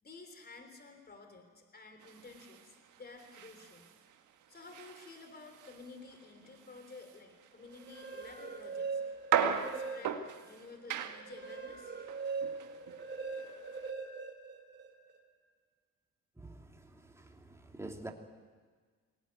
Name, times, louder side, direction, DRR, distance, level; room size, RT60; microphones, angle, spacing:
voice 1, 0.0-3.9 4.5-9.0 9.3-12.0, left 3 dB, 30° left, 3.7 m, -52 dB
sound 1, 2.0-13.9, right 8 dB, 80° right, 1.6 m, -39 dB
sound 2, 7.7-10.4 10.9-15.2, right 4 dB, 35° right, 3.2 m, -41 dB
voice 2, 16.4-16.7 16.9-18.1, right 2 dB, 10° right, 2.7 m, -47 dB
22.5 x 18.0 x 9.5 m
cardioid pair, 90°, 30 cm